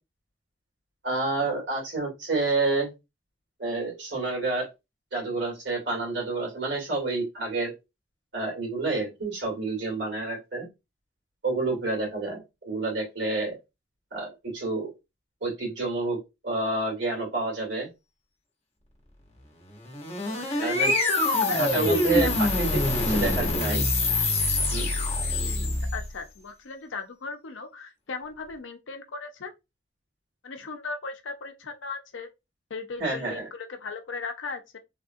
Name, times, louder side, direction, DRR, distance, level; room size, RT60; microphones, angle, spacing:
voice 1, 1.0-2.9 3.6-4.7 5.1-7.7 8.3-10.7 11.4-13.5 14.1-14.9 15.4-16.2 16.4-17.9 20.6-20.9 21.5-22.8 23.1-23.8 24.7-24.9 33.0-33.5, right 3 dB, 75° right, 2.0 m, -29 dB
sound 1, 19.8-26.1, left 2 dB, 35° left, 0.9 m, -25 dB
voice 2, 20.3-20.7 21.2-21.6 22.2-22.6 25.9-29.5 30.4-32.3 32.7-34.8, left 4 dB, 90° left, 0.6 m, -37 dB
3.5 x 2.4 x 2.6 m
head